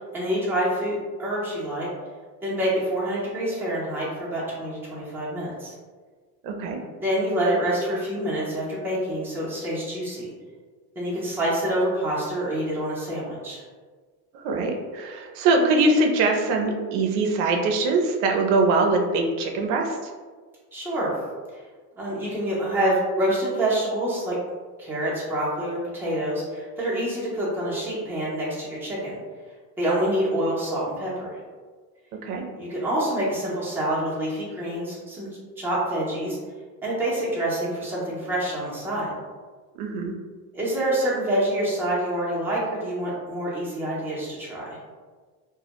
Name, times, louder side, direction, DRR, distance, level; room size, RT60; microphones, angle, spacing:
voice 1, 0.1-1.9 2.4-5.7 6.8-10.3 11.0-13.6 20.7-21.1 22.0-24.4 24.8-29.1 29.8-31.4 32.6-35.3 35.6-36.4 36.8-39.1 40.5-44.8, right 1 dB, 5° right, -7 dB, 0.6 m, -27 dB
voice 2, 6.4-6.8 14.3-20.1 32.2-32.4 39.8-40.2, right 3 dB, 85° right, 2 dB, 0.5 m, -22 dB
2.2 x 2.0 x 2.8 m, 1.5 s
cardioid pair, 130°, 44 cm